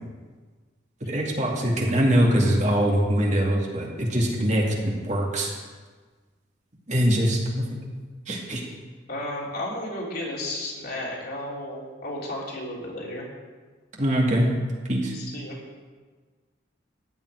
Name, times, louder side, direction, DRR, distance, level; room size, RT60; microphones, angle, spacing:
voice 1, 1.0-5.5 6.9-7.7 8.3-8.6 14.0-14.5 14.9-15.1, equal, 35° right, -2 dB, 2.4 m, -23 dB
voice 2, 9.1-13.3 15.1-15.6, left 1 dB, 50° left, -3 dB, 3.4 m, -33 dB
14.5 x 5.8 x 9.9 m, 1.4 s
head